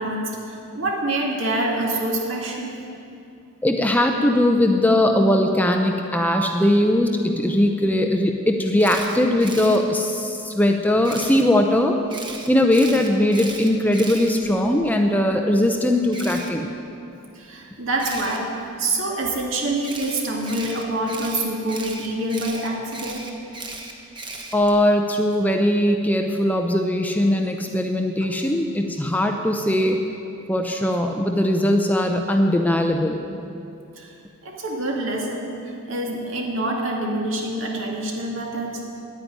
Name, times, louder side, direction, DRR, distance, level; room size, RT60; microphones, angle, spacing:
voice 1, 0.0-2.8 17.3-18.5 18.8-23.3 34.0-34.1 34.4-35.6 35.9-38.8, right 1 dB, 60° right, -1 dB, 2.2 m, -26 dB
voice 2, 3.6-12.0 12.5-16.7 24.5-30.0 30.5-33.2, left 1 dB, 5° left, 3 dB, 0.6 m, -20 dB
Camera, 8.8-9.8 11.0-11.4 12.1-14.9 16.1-16.5 18.0-18.4 19.8-24.8, right 3 dB, 20° right, 1.1 m, -36 dB
10.5 x 9.7 x 9.4 m, 2.6 s
head